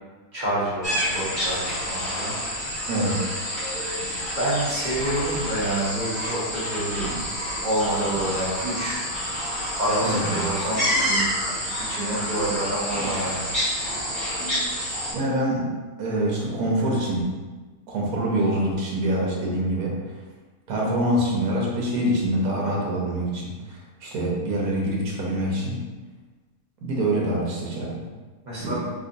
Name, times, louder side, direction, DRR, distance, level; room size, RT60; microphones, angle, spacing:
voice 1, 0.3-2.3 4.4-7.2 7.6-9.0 9.8-11.3 11.8-13.5 28.4-28.8, right 1 dB, 30° right, -9 dB, 1.1 m, -28 dB
sound 1, 0.8-15.1, equal, 20° left, 1.0 m, -28 dB
voice 2, 10.0-10.5 15.1-15.7 16.0-17.3 17.9-20.0 20.7-25.8 26.8-28.0 28.6-28.8, right 1 dB, 75° right, -2 dB, 1.3 m, -25 dB
4.7 x 2.3 x 2.6 m, 1.3 s
omnidirectional pair, 1.6 m